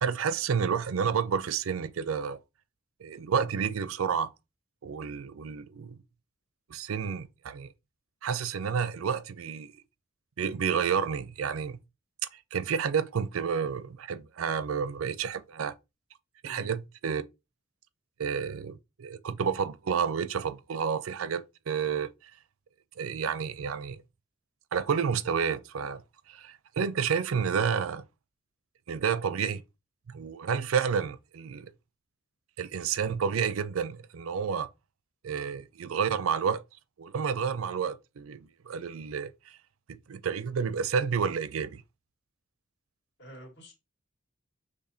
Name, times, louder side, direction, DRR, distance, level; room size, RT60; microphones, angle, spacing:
voice 1, 0.0-2.4 3.0-4.3 4.8-6.0 6.7-7.7 8.2-9.7 10.4-11.8 12.5-15.7 16.4-17.2 18.2-22.1 23.0-24.0 24.7-26.0 26.3-28.0 28.9-29.6 30.1-31.7 32.6-34.7 35.2-36.6 37.0-38.4 38.7-39.3 39.9-41.8, right 6 dB, 85° right, 0.5 m, -30 dB
voice 2, 43.2-43.7, equal, 60° left, 1.7 m, -48 dB
6.0 x 3.3 x 2.7 m
head